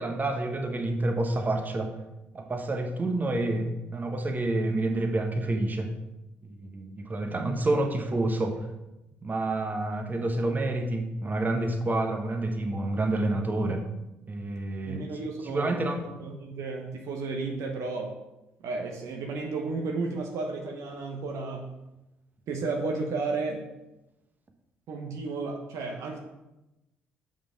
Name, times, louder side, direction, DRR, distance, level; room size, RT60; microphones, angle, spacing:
voice 1, 0.0-2.0 2.3-6.0 6.4-8.7 9.2-13.8 14.3-15.2 15.4-16.1, right 2 dB, 30° right, 4 dB, 1.2 m, -28 dB
voice 2, 14.8-15.8 16.2-18.2 18.6-21.7 22.5-23.7 24.9-26.2, right 3 dB, 65° right, 2 dB, 1.0 m, -33 dB
5.8 x 5.5 x 5.0 m, 0.95 s
hypercardioid pair, 45°, 6 cm